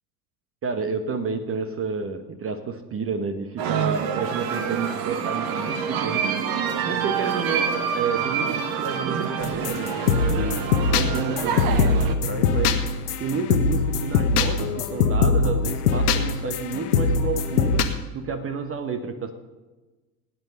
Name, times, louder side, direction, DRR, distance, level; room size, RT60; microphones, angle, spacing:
voice 1, 0.6-6.3 6.9-12.8 13.2-17.8 18.1-19.3, right 5 dB, 30° right, 8 dB, 1.2 m, -30 dB
sound 1, 3.6-12.1, right 7 dB, 45° right, 1.6 m, -27 dB
sound 2, 9.4-17.8, left 4 dB, 70° left, 1.5 m, -22 dB
17.0 x 9.5 x 5.4 m, 1.2 s
figure-of-eight pair, 75°, 48 cm